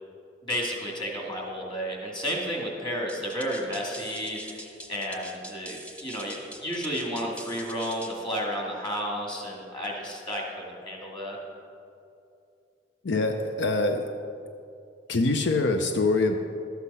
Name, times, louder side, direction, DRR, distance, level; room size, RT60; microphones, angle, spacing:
voice 1, 0.4-4.6 4.9-11.4, equal, 25° left, -1 dB, 2.2 m, -32 dB
sound 1, 3.1-8.2, right 1 dB, 10° left, 1.0 m, -43 dB
voice 2, 13.0-14.1 15.1-16.4, left 3 dB, 80° left, 5 dB, 0.6 m, -24 dB
12.5 x 8.2 x 5.6 m, 2.6 s
head